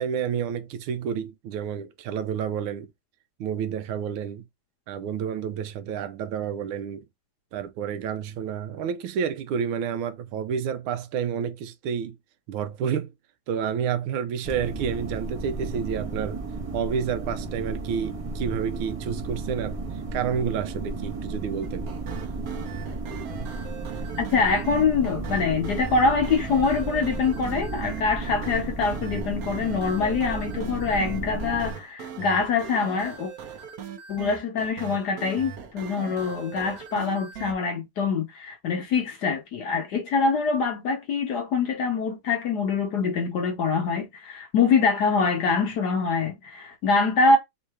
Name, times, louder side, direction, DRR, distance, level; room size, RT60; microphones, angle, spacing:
voice 1, 0.0-2.9 3.4-4.4 4.9-7.0 7.5-12.2 12.5-13.1 13.5-16.4 16.7-19.8 20.1-21.9, right 7 dB, 80° right, 1.4 m, -29 dB
sound 1, 14.4-31.7, right 3 dB, 25° right, 0.7 m, -34 dB
sound 2, 21.6-37.5, right 7 dB, 60° right, 0.9 m, -40 dB
voice 2, 24.2-33.3 34.1-47.4, left 4 dB, 65° left, 1.1 m, -24 dB
3.7 x 2.7 x 4.5 m
omnidirectional pair, 2.4 m